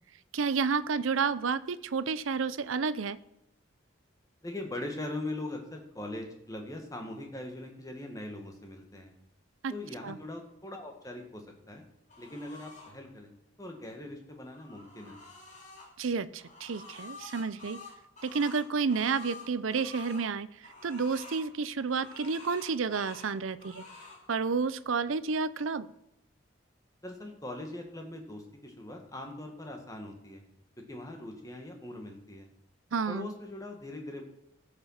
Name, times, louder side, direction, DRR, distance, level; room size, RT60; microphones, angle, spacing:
voice 1, 0.3-3.2 9.6-9.7 10.0-10.2 16.0-17.8 18.2-20.5 20.8-23.8 24.3-25.9 32.9-33.3, right 5 dB, 80° right, 16 dB, 0.6 m, -30 dB
voice 2, 4.4-9.1 9.7-11.8 12.2-13.3 13.6-15.2 27.0-30.4 30.8-32.5 33.1-34.2, left 1 dB, 15° left, 3 dB, 1.8 m, -41 dB
sound 1, 12.1-12.9 14.3-15.9 16.4-20.2 20.6-21.5 21.9-23.3 23.6-24.2, left 3 dB, 35° left, 3.0 m, -48 dB
14.5 x 6.8 x 5.8 m, 0.83 s
head